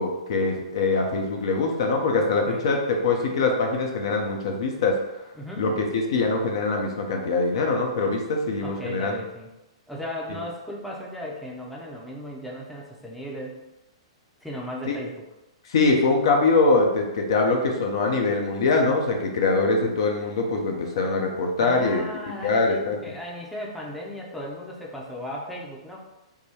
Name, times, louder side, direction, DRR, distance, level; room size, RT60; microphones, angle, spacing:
voice 1, 0.0-5.0 5.6-9.1 14.9-15.0 15.7-22.0 22.4-23.0, left 3 dB, 60° left, 2 dB, 0.7 m, -23 dB
voice 2, 2.3-2.7 5.3-5.7 8.6-9.5 9.9-13.6 14.4-15.3 21.6-26.0, equal, ahead, -3 dB, 0.7 m, -36 dB
3.6 x 2.2 x 4.3 m, 0.97 s
figure-of-eight pair, 115°, 3 cm